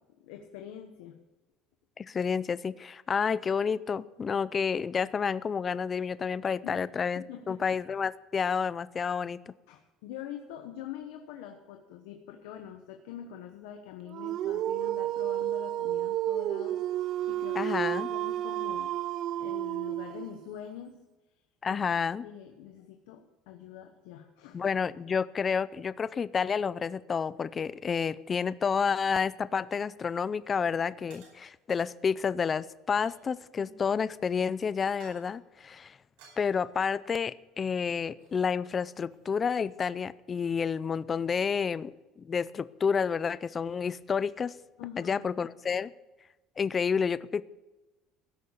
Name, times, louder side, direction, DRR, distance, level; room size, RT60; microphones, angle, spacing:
voice 1, 0.2-1.2 6.6-6.8 7.1-7.7 9.7-19.0 19.4-21.0 21.7-21.9 22.2-24.6 33.6-33.7 44.8-45.3, left 10 dB, 85° left, 5 dB, 1.1 m, -45 dB
voice 2, 2.0-9.5 17.5-18.1 21.6-22.2 24.5-36.0 36.4-41.9 42.2-44.5 45.0-45.9 46.6-47.4, left 6 dB, 30° left, 17 dB, 0.5 m, -30 dB
Dog, 14.1-20.5, right 13 dB, 55° right, 0.4 m, -31 dB
sound 1, 30.0-30.2 31.1-31.8 32.9-33.6 34.9-35.4 36.2-37.7 38.1-38.5 38.7-39.8, right 4 dB, 85° right, 5.2 m, -59 dB
16.0 x 6.5 x 7.0 m, 1.1 s
cardioid pair, 120°, 0 cm